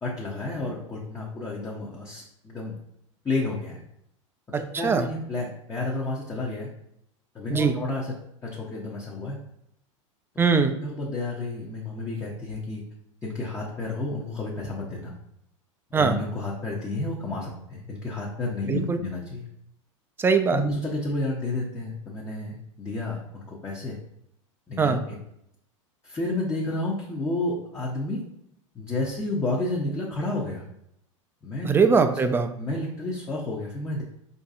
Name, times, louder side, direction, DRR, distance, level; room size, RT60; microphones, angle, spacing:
voice 1, 0.0-2.8 3.2-3.8 4.5-6.7 7.3-8.1 8.4-9.4 10.3-10.4 10.8-12.8 13.2-15.1 15.9-19.5 20.5-24.0 24.7-25.2 26.0-28.2 28.7-30.6 31.4-31.8 32.6-34.0, left 2 dB, 20° left, -4 dB, 0.7 m, -31 dB
voice 2, 10.4-10.7 15.9-16.2 18.7-19.0 20.2-20.6 24.8-25.0 31.6-32.5, right 5 dB, 15° right, 8 dB, 0.3 m, -21 dB
4.5 x 2.6 x 2.5 m, 0.75 s
hypercardioid pair, 95°, 17 cm